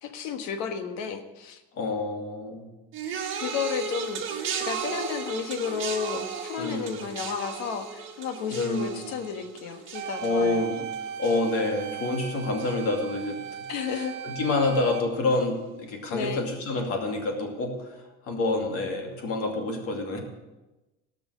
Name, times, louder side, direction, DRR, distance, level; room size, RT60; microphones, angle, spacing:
voice 1, 0.0-1.6 3.4-10.6 13.7-14.2 16.1-16.5, left 7 dB, 65° left, 7 dB, 1.4 m, -32 dB
voice 2, 1.7-2.7 6.6-7.0 8.5-9.1 10.2-10.9 11.2-13.6 13.9-20.2, left 2 dB, 50° left, 2 dB, 2.6 m, -28 dB
sound 1, 2.9-12.3 12.6-13.1 14.0-14.1, right 6 dB, 40° right, 1.8 m, -36 dB
sound 2, 9.9-15.0, right 8 dB, 65° right, 1.1 m, -37 dB
17.5 x 6.1 x 6.4 m, 1.1 s
cardioid pair, 150°, 30 cm